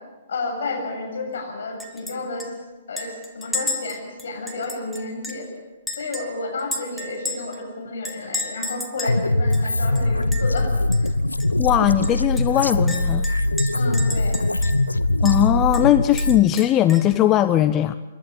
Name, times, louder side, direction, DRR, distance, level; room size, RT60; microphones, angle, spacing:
voice 1, 0.3-2.5 2.9-5.5 5.9-10.7 11.0-11.1 13.7-14.4, left 3 dB, 65° left, 1 dB, 7.2 m, -31 dB
Chink clink, 1.8-2.1 2.4-2.5 3.0-5.5 5.9-7.6 8.0-9.2 9.5-9.6 10.0-10.6 10.9-11.1 11.4-11.5 12.0-14.9 15.3-15.4 15.7-17.1, left 2 dB, ahead, 2.0 m, -32 dB
sound 1, 9.0-16.4, left 2 dB, 90° left, 0.8 m, -21 dB
voice 2, 11.6-13.3 15.2-17.9, left 12 dB, 25° left, 11 dB, 0.6 m, -19 dB
27.0 x 12.0 x 8.7 m, 1.3 s
figure-of-eight pair, 120°, 0 cm